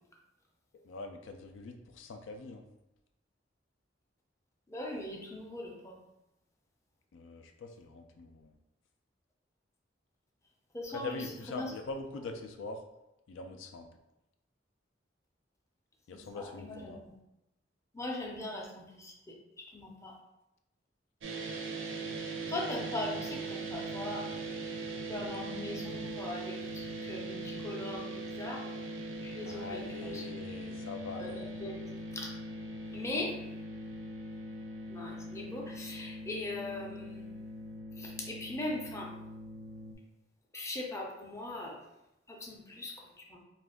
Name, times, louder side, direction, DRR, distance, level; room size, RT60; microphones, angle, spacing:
voice 1, 0.8-2.7 7.1-8.5 10.9-12.8 13.3-13.9 16.1-17.0 29.4-31.4, left 3 dB, 90° left, 5 dB, 0.4 m, -43 dB
voice 2, 4.7-6.0 10.7-11.7 16.1-17.2 17.9-20.1 22.5-24.3 25.1-28.6 29.2-30.2 31.2-31.8 32.1-32.3 32.9-33.4 34.9-37.4 38.0-39.1 40.5-41.8 42.3-43.4, left 2 dB, 15° left, -1 dB, 0.5 m, -40 dB
sound 1, 21.2-39.9, right 2 dB, 80° right, 0.5 m, -41 dB
2.5 x 2.4 x 3.5 m, 0.89 s
head